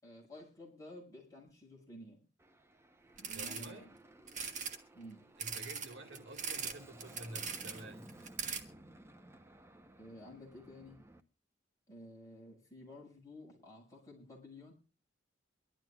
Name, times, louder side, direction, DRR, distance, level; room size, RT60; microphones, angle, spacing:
voice 1, 0.0-2.2 3.2-3.9 4.9-5.2 10.0-11.0 11.9-14.7, left 1 dB, 20° left, 6.0 m, -52 dB
Aircraft, 2.4-11.2, right 1 dB, 15° right, 0.8 m, -57 dB
sound 1, 3.2-3.7 4.3-4.8 5.4-6.7 7.0-7.8 8.1-8.6, right 6 dB, 40° right, 1.5 m, -40 dB
voice 2, 3.3-3.9 5.4-8.2, right 1 dB, 70° right, 2.0 m, -49 dB
24.0 x 12.5 x 2.3 m
head